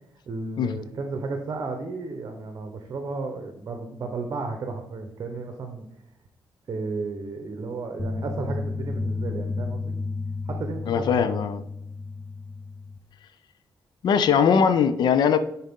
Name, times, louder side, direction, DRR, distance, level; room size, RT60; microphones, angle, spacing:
voice 1, 0.3-5.8 6.7-9.9 10.5-11.4, right 3 dB, 45° right, 5 dB, 0.9 m, -33 dB
sound 1, 8.0-13.0, left 3 dB, 5° left, 0.5 m, -32 dB
voice 2, 10.9-11.6 14.0-15.4, left 7 dB, 65° left, 11 dB, 0.5 m, -20 dB
10.0 x 4.3 x 3.7 m, 0.78 s
cardioid pair, 135°, 8 cm